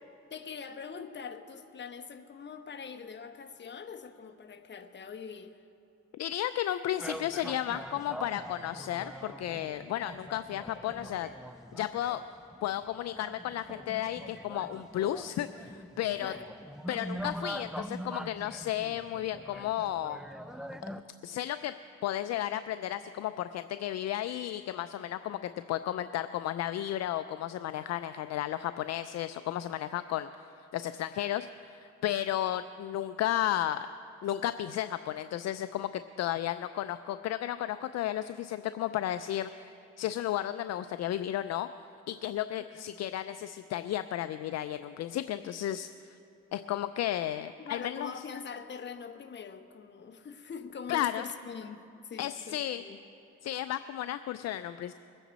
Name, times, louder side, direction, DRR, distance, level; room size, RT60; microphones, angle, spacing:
voice 1, 0.3-5.6 16.2-16.5 42.6-43.0 47.6-53.0, left 6 dB, 35° left, 7 dB, 1.0 m, -43 dB
voice 2, 6.1-11.3 11.7-12.2 12.6-16.3 16.9-20.2 21.2-21.7 22.0-30.3 30.7-33.9 34.2-35.9 36.2-41.7 42.1-46.2 46.5-48.1 50.9-51.2 52.2-52.8 53.4-54.9, left 12 dB, 60° left, 11 dB, 0.4 m, -33 dB
sound 1, 7.0-21.0, equal, ahead, 0.4 m, -43 dB
22.0 x 9.1 x 4.1 m, 2.7 s
cardioid pair, 90°, 30 cm